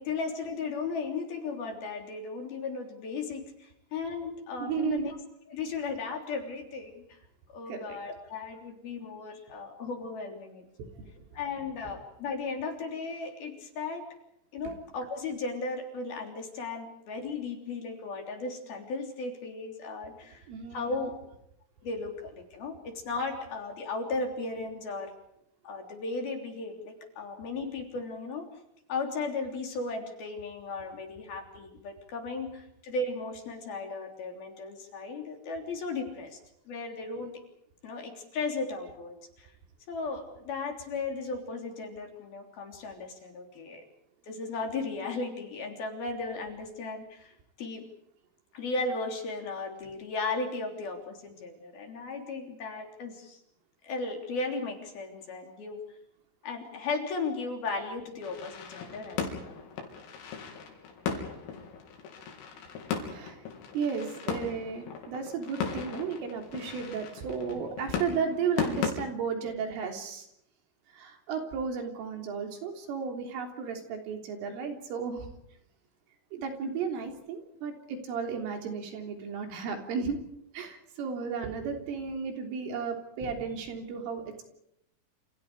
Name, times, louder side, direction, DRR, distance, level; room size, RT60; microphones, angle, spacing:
voice 1, 0.0-5.2 5.5-7.2 7.5-10.6 11.3-14.1 14.5-20.5 20.7-21.2 21.8-25.1 25.6-28.6 28.9-36.4 36.7-37.4 37.8-39.5 39.9-43.8 44.3-47.9 48.5-53.4 53.8-55.9 56.4-59.2, left 3 dB, 50° left, 3 dB, 4.9 m, -36 dB
voice 2, 4.6-5.1 7.7-8.0 10.8-10.9 20.5-21.0 63.1-63.4 63.7-70.3 70.9-75.3 76.3-80.2 80.5-84.5, right 6 dB, 75° right, 4 dB, 5.9 m, -34 dB
sound 1, 58.2-68.9, left 6 dB, 80° left, 6.4 m, -37 dB
28.5 x 28.0 x 5.0 m, 0.77 s
omnidirectional pair, 5.9 m